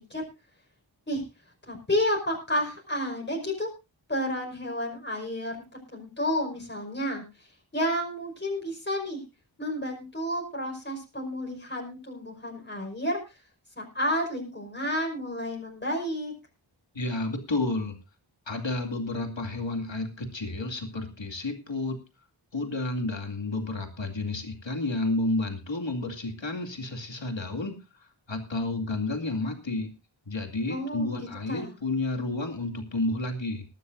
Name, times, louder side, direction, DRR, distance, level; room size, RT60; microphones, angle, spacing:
voice 1, 1.7-3.7 4.1-9.2 9.6-13.2 13.8-16.3 30.7-31.2 31.5-31.7, equal, 25° left, 0 dB, 5.4 m, -31 dB
voice 2, 16.9-18.0 18.5-22.0 22.5-29.9 30.3-33.7, left 2 dB, 70° left, 5 dB, 2.4 m, -31 dB
20.5 x 12.5 x 2.6 m, 0.27 s
wide cardioid pair, 40°, 46 cm